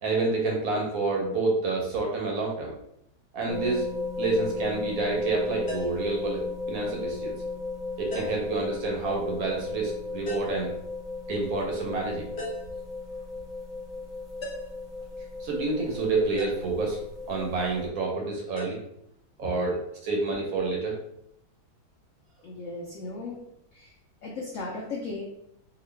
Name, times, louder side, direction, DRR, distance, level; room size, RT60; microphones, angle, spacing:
voice 1, 0.0-2.7 3.3-3.9 4.2-6.4 6.7-7.3 8.0-10.7 11.3-12.3 15.4-17.0 17.3-18.8 19.4-19.8 20.0-21.0, right 3 dB, 70° right, 0 dB, 0.9 m, -28 dB
sound 1, 3.5-17.8, left 3 dB, ahead, 0.4 m, -35 dB
sound 2, 5.7-6.1 8.1-8.5 10.3-10.6 12.4-12.8 14.4-14.8 16.4-16.7 18.6-18.7, equal, 50° left, 0.9 m, -37 dB
voice 2, 22.4-23.4 23.7-23.9 24.2-25.2, left 3 dB, 80° left, -1 dB, 0.7 m, -36 dB
2.8 x 2.4 x 3.2 m, 0.78 s
omnidirectional pair, 1.9 m